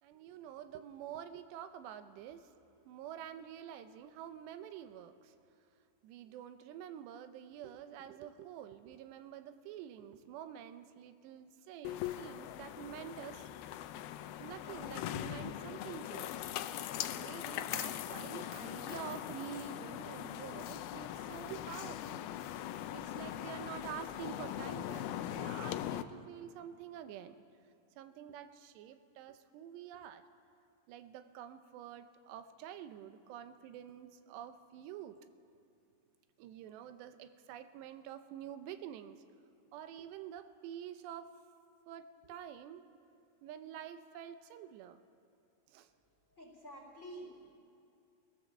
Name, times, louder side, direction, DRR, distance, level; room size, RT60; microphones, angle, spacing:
voice 1, 0.0-2.5 2.9-5.3 6.0-13.5 14.4-16.5 17.1-22.2 22.9-27.4 28.0-30.3 30.9-35.2 36.4-39.2 39.7-41.4 41.9-42.9 43.4-45.0 45.7-45.9, right 10 dB, 85° right, 10 dB, 3.0 m, -48 dB
sound 1, 11.8-26.0, left 12 dB, 80° left, 2.3 m, -41 dB
voice 2, 46.3-47.6, right 1 dB, 20° left, 0 dB, 3.0 m, -49 dB
23.5 x 17.0 x 7.3 m, 2.6 s
omnidirectional pair, 4.8 m